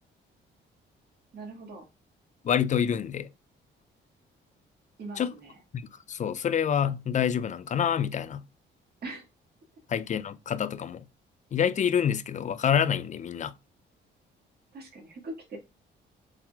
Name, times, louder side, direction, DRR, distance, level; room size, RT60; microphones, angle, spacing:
voice 1, 1.3-1.8 5.0-5.6 9.0-9.3 14.7-15.6, right 2 dB, 55° right, 1.8 m, -41 dB
voice 2, 2.4-3.3 5.2-5.3 6.1-8.4 9.9-11.0 11.5-13.5, left 8 dB, 40° left, 0.4 m, -27 dB
4.5 x 3.7 x 2.3 m
cardioid pair, 90°, 20 cm